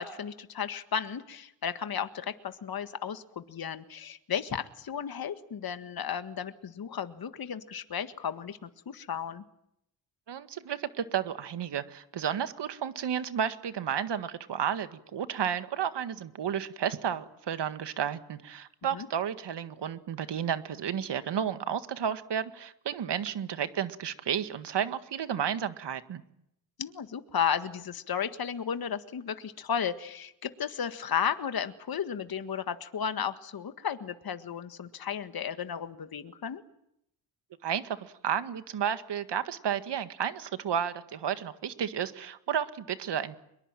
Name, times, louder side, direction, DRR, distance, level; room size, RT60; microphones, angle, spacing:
voice 1, 0.0-9.4 18.9-19.1 26.8-36.6, left 8 dB, 55° left, 10 dB, 1.7 m, -34 dB
voice 2, 10.3-26.2 37.6-43.4, right 8 dB, 70° right, 11 dB, 1.9 m, -32 dB
24.5 x 22.5 x 9.0 m, 0.77 s
cardioid pair, 85°, 44 cm